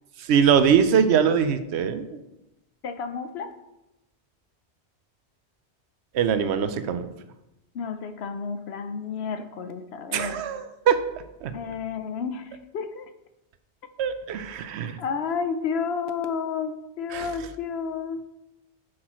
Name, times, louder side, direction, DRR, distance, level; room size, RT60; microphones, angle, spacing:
voice 1, 0.2-2.2 6.1-7.1 10.1-11.0 11.4-11.5 14.0-15.0 17.1-17.3, right 7 dB, 80° right, 10 dB, 0.9 m, -22 dB
voice 2, 2.8-3.6 7.7-10.4 11.5-13.1 15.0-18.2, left 6 dB, 70° left, 9 dB, 0.9 m, -31 dB
9.8 x 6.3 x 3.0 m, 0.92 s
omnidirectional pair, 1.1 m